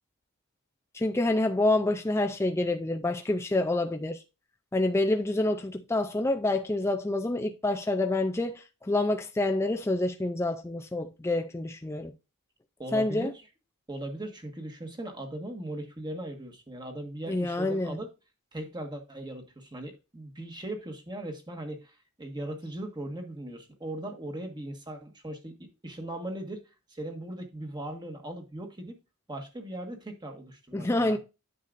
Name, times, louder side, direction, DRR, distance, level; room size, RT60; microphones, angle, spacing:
voice 1, 0.9-4.2 4.7-12.1 12.9-13.3 17.3-18.0 30.7-31.2, left 2 dB, 10° left, 0.4 m, -27 dB
voice 2, 12.8-13.4 13.9-18.1 18.5-26.6 26.9-29.0 29.3-31.2, right 1 dB, 20° right, 1.5 m, -39 dB
9.6 x 6.5 x 2.5 m
head